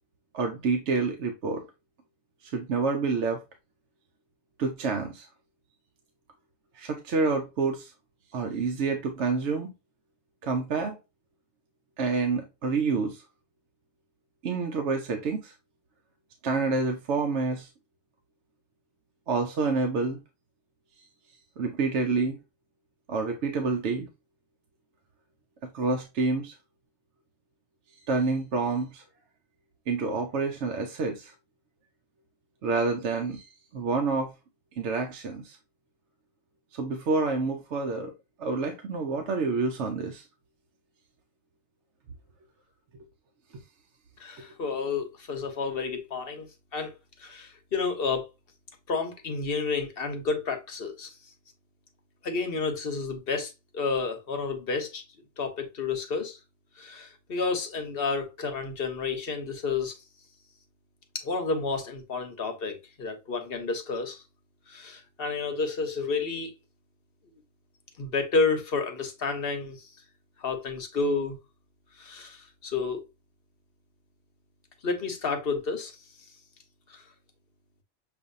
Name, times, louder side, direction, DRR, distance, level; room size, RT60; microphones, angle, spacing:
voice 1, 0.3-1.7 2.4-3.4 4.6-5.3 6.8-7.9 8.3-9.7 10.4-11.0 12.0-13.2 14.4-15.5 16.4-17.7 19.3-20.2 21.6-22.4 23.1-24.1 25.7-26.5 28.1-29.0 29.9-31.3 32.6-33.4 33.7-34.3 34.8-35.6 36.7-38.1 38.4-40.2, right 4 dB, 65° right, 0.9 m, -28 dB
voice 2, 44.2-46.5 46.7-46.9 47.2-48.3 48.9-51.1 52.2-55.0 55.4-56.4 56.8-59.9 61.1-64.2 64.7-66.5 68.0-69.9 70.4-71.4 72.0-73.0 74.8-75.9 76.9-77.0, left 4 dB, 50° left, 1.0 m, -30 dB
6.7 x 2.6 x 2.6 m
omnidirectional pair, 1.4 m